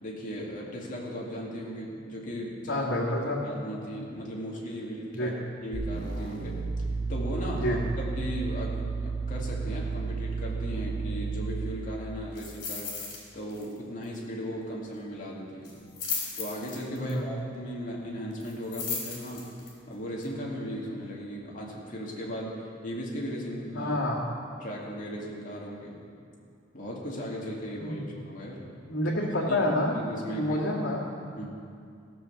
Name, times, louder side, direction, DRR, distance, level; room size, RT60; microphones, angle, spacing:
voice 1, 0.0-2.9 3.3-5.3 5.6-6.7 7.1-12.9 13.3-15.8 16.4-19.5 19.9-24.0 24.6-26.0 26.7-28.7 29.0-29.6 29.9-30.6 31.4-31.5, equal, 40° left, -3 dB, 2.3 m, -37 dB
voice 2, 2.7-3.6 5.1-5.3 7.6-7.8 16.9-17.3 23.7-24.2 27.8-28.1 28.9-30.0 30.3-31.3, left 1 dB, 90° left, -8 dB, 1.9 m, -28 dB
sound 1, 5.7-11.9, right 4 dB, 80° right, 2.1 m, -32 dB
sound 2, 12.4-13.2 13.5-13.8 14.0-14.1 15.6-17.1 18.4-19.7 20.2-20.3, left 5 dB, 60° left, 3.6 m, -35 dB
15.0 x 6.9 x 7.0 m, 2.4 s
head